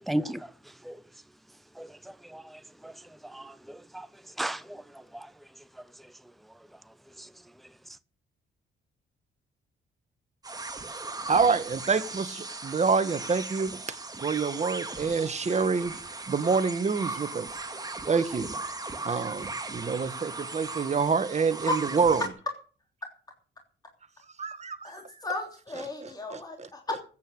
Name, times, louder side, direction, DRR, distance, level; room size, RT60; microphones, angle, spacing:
voice 1, 0.1-0.5 0.8-1.0 1.8-1.9 2.3-2.9 3.2-4.1 4.4-4.8 5.1-5.3, right 1 dB, ahead, 0.6 m, -34 dB
sound 1, 10.4-22.3, right 3 dB, 20° right, 2.1 m, -38 dB
voice 2, 11.3-15.9 16.3-17.5 18.1-18.5 19.0-22.2 24.4-25.0 26.0-26.7, right 5 dB, 35° right, 1.7 m, -27 dB
voice 3, 24.8-27.0, left 2 dB, 20° left, 3.1 m, -34 dB
14.5 x 9.1 x 6.7 m
cardioid pair, 90°, 20 cm